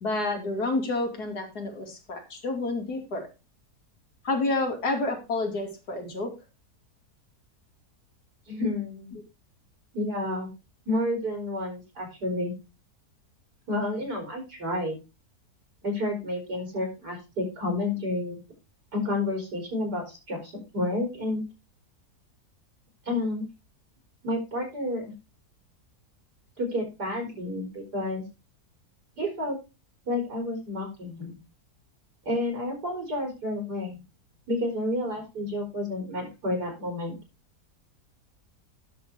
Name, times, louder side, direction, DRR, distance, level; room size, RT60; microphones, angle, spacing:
voice 1, 0.0-3.3 4.2-6.3 9.1-9.2, left 2 dB, 75° left, 2 dB, 3.0 m, -29 dB
voice 2, 8.5-9.1 9.9-10.5 10.9-12.5 13.7-14.9 15.8-18.4 18.9-21.4 23.1-23.5 24.2-25.1 26.6-28.2 29.2-29.6 30.1-31.4 32.2-34.0 34.5-37.1, left 1 dB, 90° right, 2 dB, 4.6 m, -30 dB
10.5 x 6.6 x 4.6 m, 0.28 s
omnidirectional pair, 1.7 m